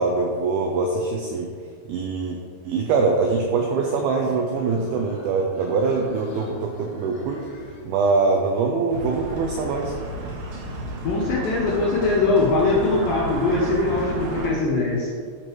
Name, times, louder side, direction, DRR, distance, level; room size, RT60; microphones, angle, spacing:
voice 1, 0.0-1.5 1.9-2.4 2.6-7.4 7.8-9.9, right 4 dB, 85° right, 1 dB, 2.1 m, -23 dB
sound 1, 3.5-8.3, left 1 dB, 60° left, 2.1 m, -43 dB
sound 2, 8.9-14.5, left 1 dB, 50° right, 2.3 m, -37 dB
sound 3, 8.9-14.5, right 2 dB, 70° right, 2.4 m, -34 dB
voice 2, 11.0-15.1, left 3 dB, 75° left, -3 dB, 2.1 m, -21 dB
13.0 x 6.8 x 3.1 m, 2.1 s
omnidirectional pair, 5.3 m